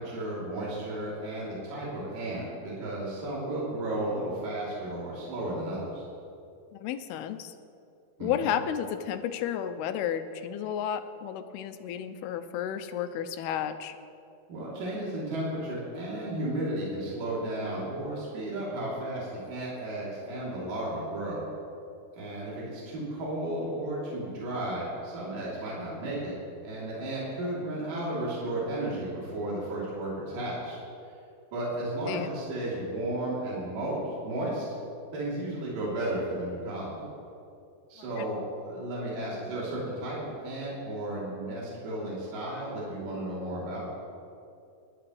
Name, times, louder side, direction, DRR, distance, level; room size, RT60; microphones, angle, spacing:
voice 1, 0.0-6.1 8.2-8.5 14.5-21.4 22.1-26.3 26.6-30.8 31.5-34.7 35.1-37.1 37.9-43.9, right 1 dB, 60° right, -7 dB, 4.7 m, -33 dB
voice 2, 6.7-7.5 8.2-14.0 27.4-27.5 32.1-32.3 38.2-38.3, left 9 dB, 90° left, 9 dB, 2.7 m, -32 dB
27.0 x 12.0 x 3.2 m, 2.6 s
omnidirectional pair, 4.5 m